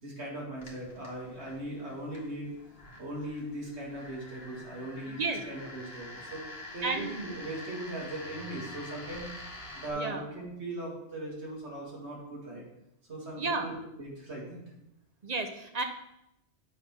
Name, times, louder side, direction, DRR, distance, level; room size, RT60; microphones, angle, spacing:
voice 1, 0.0-2.5 3.0-12.6 13.1-14.6, right 1 dB, 65° right, -3 dB, 2.3 m, -39 dB
sound 1, 0.6-9.9, left 1 dB, 55° left, 1.6 m, -47 dB
voice 2, 5.1-5.4 6.8-7.2 9.9-10.2 13.4-13.7 15.2-15.8, right 3 dB, 45° right, 5 dB, 0.5 m, -32 dB
8.1 x 3.5 x 5.8 m, 0.83 s
omnidirectional pair, 1.2 m